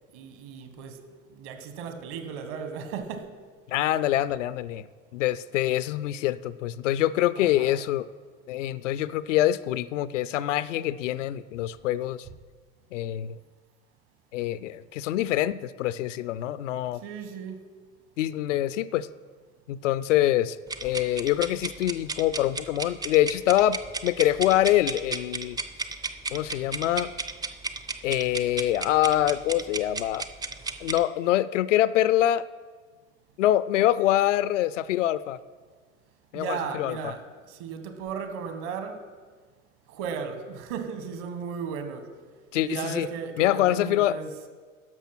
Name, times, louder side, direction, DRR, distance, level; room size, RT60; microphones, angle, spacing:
voice 1, 0.1-1.0 1.3-3.4 3.7-3.9 7.4-7.8 16.9-17.6 36.3-39.1 39.9-42.1 42.6-44.3, right 6 dB, 55° right, 1.4 m, -36 dB
voice 2, 3.7-4.9 5.1-8.1 8.5-12.3 12.9-13.4 14.3-17.0 18.2-19.1 19.7-20.6 20.8-25.6 26.3-27.1 28.0-30.3 30.8-32.5 33.4-35.4 36.3-37.0 42.5-43.1 43.4-44.2, left 13 dB, 65° left, 0.5 m, -25 dB
sound 1, 20.7-31.0, right 3 dB, 10° right, 0.4 m, -34 dB
11.0 x 6.7 x 5.9 m
figure-of-eight pair, 75°, 39 cm